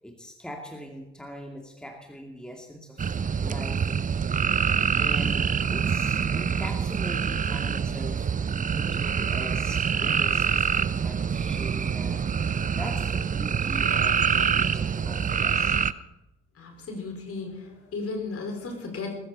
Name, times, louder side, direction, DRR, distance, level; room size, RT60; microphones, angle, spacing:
voice 1, 0.0-3.1 3.4-4.1 5.0-8.3 8.7-12.3 12.7-15.8, equal, ahead, 2 dB, 2.5 m, -41 dB
sound 1, 3.0-15.9, right 6 dB, 25° right, 0.7 m, -25 dB
voice 2, 16.5-19.2, left 3 dB, 45° left, 2 dB, 5.1 m, -35 dB
20.5 x 14.5 x 4.2 m, 0.93 s
figure-of-eight pair, 45°, 33 cm